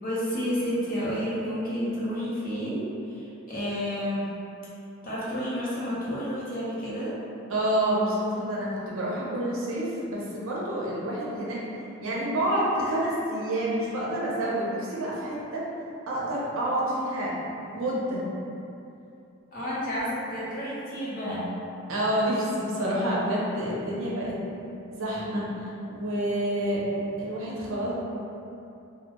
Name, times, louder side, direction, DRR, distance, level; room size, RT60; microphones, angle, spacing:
voice 1, 0.0-4.3 5.0-7.1 19.5-21.5, equal, 40° left, -9 dB, 0.6 m, -30 dB
voice 2, 7.5-11.6 12.0-15.7 16.1-17.4 17.7-18.2 21.9-24.4 24.9-26.9 27.2-27.9, right 1 dB, 65° right, -6 dB, 0.5 m, -28 dB
2.2 x 2.1 x 2.9 m, 2.7 s
head